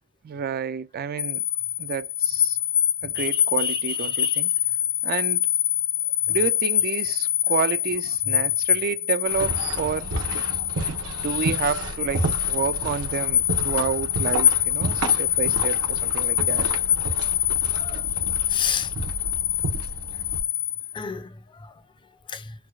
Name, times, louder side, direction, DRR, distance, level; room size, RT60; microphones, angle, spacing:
voice 1, 0.2-1.4 1.8-2.6 3.0-4.5 5.0-5.5 6.3-10.1 11.1-16.7, right 6 dB, 45° right, 0.3 m, -29 dB
sound 1, 1.2-21.0, left 11 dB, 60° left, 0.8 m, -25 dB
voice 2, 3.2-4.4 17.7-18.1 18.5-18.9 20.9-21.8 22.3-22.5, left 5 dB, 20° left, 0.4 m, -32 dB
sound 2, 9.3-20.4, right 2 dB, 70° right, 0.8 m, -31 dB
4.6 x 2.0 x 2.3 m
head